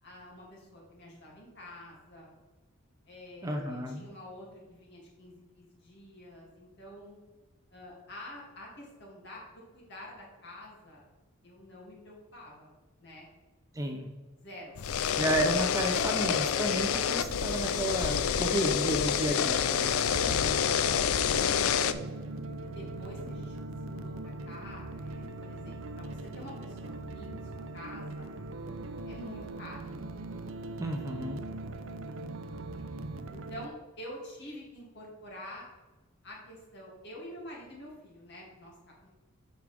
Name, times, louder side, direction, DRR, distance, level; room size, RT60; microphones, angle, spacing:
voice 1, 0.0-2.3 3.1-7.2 7.7-11.0 11.4-12.7 13.0-13.3 14.4-14.8 21.0-27.3 27.7-28.3 29.1-29.9 31.1-31.2 33.2-35.7 36.2-39.1, left 1 dB, 55° left, -3 dB, 2.5 m, -48 dB
voice 2, 3.4-4.0 13.7-14.1 15.1-19.9 30.8-31.4, equal, 15° right, 3 dB, 0.5 m, -31 dB
sound 1, 14.8-21.9, left 8 dB, 85° left, 0.4 m, -28 dB
sound 2, 19.8-33.7, right 2 dB, 65° right, 0.5 m, -40 dB
8.0 x 5.3 x 3.4 m, 1.2 s
head